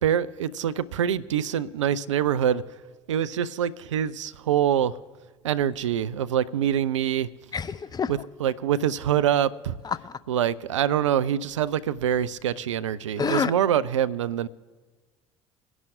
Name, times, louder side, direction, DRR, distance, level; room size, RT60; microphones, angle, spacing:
voice 1, 0.0-2.7 3.1-5.0 5.4-7.3 8.1-9.8 10.3-14.5, right 10 dB, 75° right, 0.4 m, -25 dB
voice 2, 7.5-8.1 9.8-10.2 13.2-13.5, left 6 dB, 25° left, 0.5 m, -27 dB
22.5 x 11.0 x 2.6 m
figure-of-eight pair, 60°, 16 cm